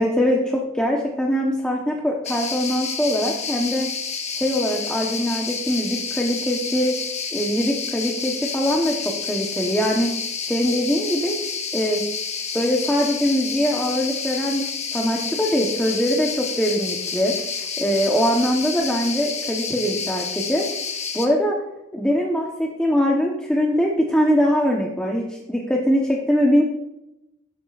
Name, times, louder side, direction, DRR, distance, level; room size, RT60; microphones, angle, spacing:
voice 1, 0.0-3.9 4.3-7.0 7.3-10.1 10.5-11.4 11.7-12.0 12.5-20.7 21.1-21.6 21.9-26.6, equal, 5° left, -2 dB, 1.1 m, -22 dB
sound 1, 2.2-21.3, left 5 dB, 35° left, 1.2 m, -29 dB
13.0 x 10.5 x 2.5 m, 0.89 s
head